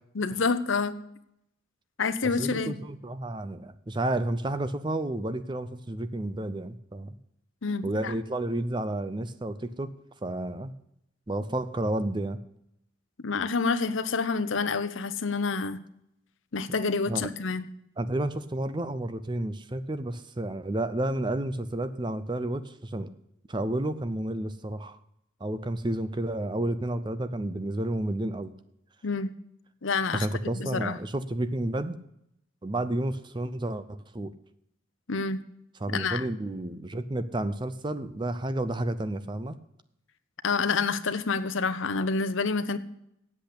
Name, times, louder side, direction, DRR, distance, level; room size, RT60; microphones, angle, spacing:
voice 1, 0.1-1.0 2.0-2.7 7.6-8.1 13.2-15.8 16.5-17.7 29.0-29.3 29.8-30.3 30.5-31.0 35.1-35.4 35.9-36.2 40.4-42.8, left 4 dB, 70° left, 0.8 m, -28 dB
voice 2, 2.4-7.1 7.8-10.7 11.3-12.4 17.1-17.3 18.0-23.1 23.5-25.0 25.4-28.5 30.1-32.0 32.6-34.3 35.8-39.6, right 1 dB, 20° right, 0.5 m, -31 dB
8.4 x 8.0 x 8.5 m
head